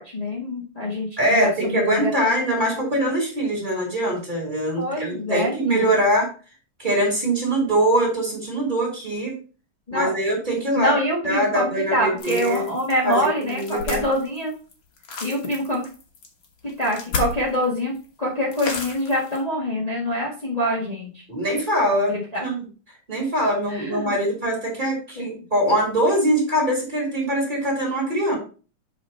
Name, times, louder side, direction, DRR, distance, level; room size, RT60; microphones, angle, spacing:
voice 1, 0.0-2.3 2.8-3.1 4.8-5.9 9.9-10.1 10.7-14.5 15.2-15.8 16.6-17.9 18.2-21.2 22.1-22.4 23.7-24.1 25.1-25.4, equal, 25° left, -5 dB, 0.8 m, -25 dB
voice 2, 1.2-6.3 6.8-9.4 9.9-10.9 11.2-12.7 13.0-14.0 21.3-22.6 23.1-28.4, right 1 dB, 15° right, -2 dB, 3.0 m, -23 dB
sound 1, 12.2-17.7 17.9-18.1 18.5-19.4, left 4 dB, 50° left, 1.8 m, -33 dB
7.1 x 4.3 x 4.3 m, 0.36 s
omnidirectional pair, 3.5 m